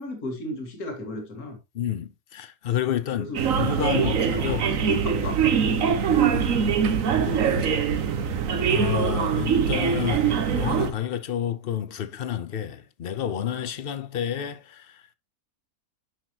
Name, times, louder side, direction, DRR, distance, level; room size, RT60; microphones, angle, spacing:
voice 1, 0.0-1.6 3.2-6.7 7.2-7.6, left 2 dB, 70° left, 2.3 m, -35 dB
voice 2, 1.8-4.8 6.2-6.4 7.4-7.8 8.7-14.6, left 9 dB, 50° left, 0.8 m, -30 dB
sound 1, 3.3-10.9, right 7 dB, 60° right, 1.3 m, -23 dB
9.8 x 5.9 x 2.9 m
omnidirectional pair, 1.6 m